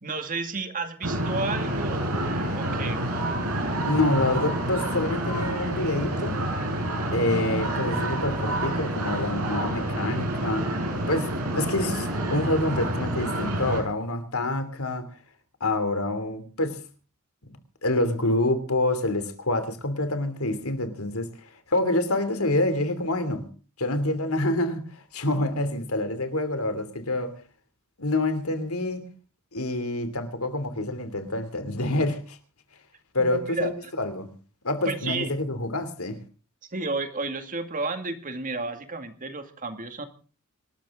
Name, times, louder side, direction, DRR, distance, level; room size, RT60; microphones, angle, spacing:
voice 1, 0.0-3.0 33.2-33.7 34.9-35.3 36.7-40.0, right 3 dB, 40° right, 2.2 m, -32 dB
sound 1, 1.0-13.8, right 1 dB, 90° right, 6.8 m, -28 dB
voice 2, 3.8-6.4 7.1-10.7 11.1-15.1 15.6-16.8 17.8-21.3 21.7-23.5 23.8-24.8 25.1-27.3 28.0-29.1 29.5-32.4 33.1-33.7 34.0-34.3 34.6-36.2, left 2 dB, 80° left, 3.0 m, -27 dB
26.0 x 13.5 x 3.8 m
head